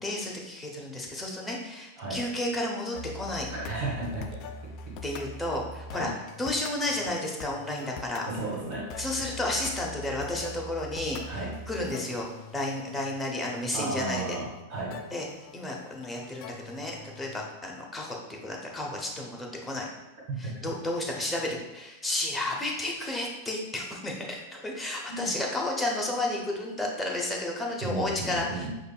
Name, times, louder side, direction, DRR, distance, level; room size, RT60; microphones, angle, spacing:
voice 1, 0.0-3.5 5.0-6.1 6.4-8.3 9.0-12.3 12.5-14.4 15.1-15.3 15.5-19.9 20.4-28.7, left 1 dB, 10° left, -2 dB, 0.8 m, -32 dB
sound 1, 2.9-17.5, left 3 dB, 45° left, 0.3 m, -43 dB
voice 2, 3.5-4.3 5.9-6.1 8.3-9.4 11.3-11.5 13.7-15.0 20.4-20.5 25.1-25.3 27.8-28.7, right 2 dB, 45° right, -6 dB, 1.5 m, -34 dB
5.0 x 2.4 x 2.2 m, 1.0 s
hypercardioid pair, 100°, 0 cm